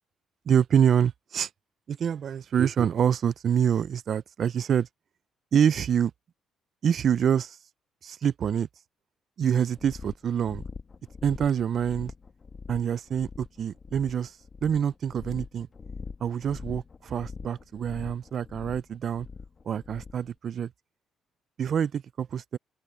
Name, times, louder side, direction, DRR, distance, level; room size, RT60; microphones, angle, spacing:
voice 1, 0.5-1.5 1.9-4.9 5.5-6.1 6.8-7.6 8.0-8.7 9.4-10.7 11.2-12.1 12.7-15.7 16.2-19.3 19.7-20.7 21.6-22.6, right 8 dB, 55° right, 0.5 m, -26 dB
sound 1, 9.7-20.3, left 5 dB, 35° left, 1.5 m, -43 dB
open air
cardioid pair, 95°, 0 cm